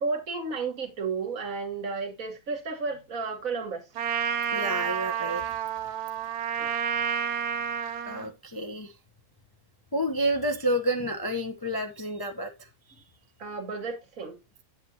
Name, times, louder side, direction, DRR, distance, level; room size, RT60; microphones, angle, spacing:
voice 1, 0.0-3.8 6.6-6.7 13.4-14.4, right 4 dB, 60° right, 1.9 m, -32 dB
Trumpet, 4.0-8.3, right 8 dB, 85° right, 1.3 m, -30 dB
voice 2, 4.5-5.6 8.0-8.9 9.9-12.5, right 1 dB, 30° left, 0.4 m, -29 dB
9.0 x 7.3 x 2.8 m
omnidirectional pair, 1.6 m